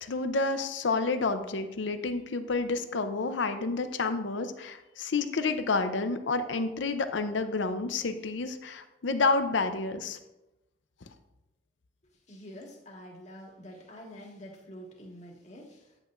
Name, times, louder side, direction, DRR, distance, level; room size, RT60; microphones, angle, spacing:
voice 1, 0.0-10.2, left 3 dB, 75° left, 9 dB, 0.6 m, -29 dB
voice 2, 12.3-16.0, equal, 40° left, -1 dB, 1.7 m, -47 dB
9.8 x 8.4 x 2.5 m, 0.94 s
head